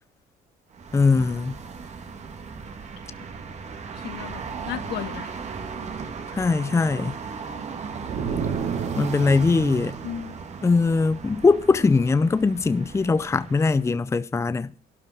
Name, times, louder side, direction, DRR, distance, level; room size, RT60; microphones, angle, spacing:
sound 1, 0.7-14.0, right 5 dB, 40° right, 2.4 m, -36 dB
voice 1, 0.9-1.6 6.3-7.1 9.0-10.0 10.6-14.7, left 4 dB, 15° left, 0.6 m, -21 dB
voice 2, 3.9-5.3 10.0-10.3, left 10 dB, 75° left, 2.0 m, -35 dB
sound 2, 8.0-9.7, right 6 dB, 65° right, 4.2 m, -29 dB
12.0 x 11.5 x 6.0 m
cardioid pair, 110°, 17 cm